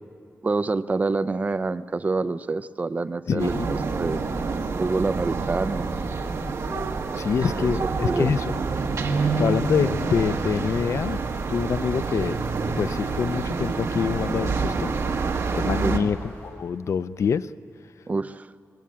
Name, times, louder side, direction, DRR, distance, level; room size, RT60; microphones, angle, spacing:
voice 1, 0.4-4.2 4.8-5.9 7.5-8.3 15.8-16.1 18.1-18.5, right 3 dB, 30° right, 13 dB, 0.5 m, -27 dB
voice 2, 3.3-3.8 7.2-8.6 9.2-11.2 11.5-12.4 12.8-14.9 15.5-17.5, left 6 dB, 65° left, 14 dB, 0.5 m, -26 dB
sound 1, 3.4-16.0, right 4 dB, 65° right, 1.7 m, -27 dB
sound 2, 11.0-16.5, left 1 dB, 40° left, 7.6 m, -47 dB
24.0 x 21.0 x 8.6 m, 2.6 s
wide cardioid pair, 170°, 5 cm